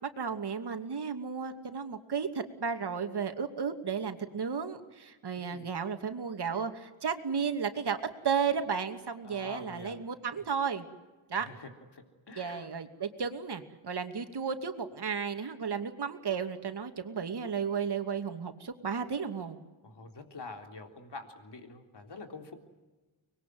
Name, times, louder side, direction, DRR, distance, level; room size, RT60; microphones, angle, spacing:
voice 1, 0.0-8.0 8.2-10.9 11.3-11.5 12.4-19.6, right 6 dB, 55° right, 7 dB, 2.7 m, -33 dB
voice 2, 5.3-5.7 9.2-10.0 11.4-12.7 19.8-22.5, left 3 dB, 55° left, 5 dB, 3.7 m, -46 dB
24.5 x 21.0 x 9.5 m, 1.2 s
cardioid pair, 65°, 47 cm